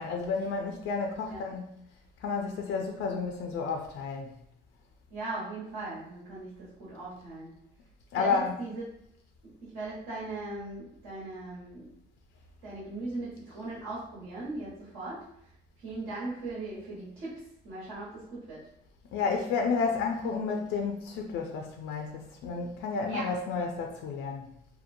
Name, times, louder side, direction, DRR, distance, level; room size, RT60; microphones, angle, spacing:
voice 1, 0.0-1.7 2.2-4.3 8.1-8.6 19.1-24.5, left 5 dB, 85° left, 3 dB, 0.4 m, -31 dB
voice 2, 5.1-7.5 8.2-8.8 9.6-11.9 12.6-15.2 15.8-18.6 23.1-23.3, right 2 dB, 80° right, -9 dB, 1.2 m, -39 dB
2.8 x 2.2 x 2.5 m, 0.73 s
cardioid pair, 90°, 20 cm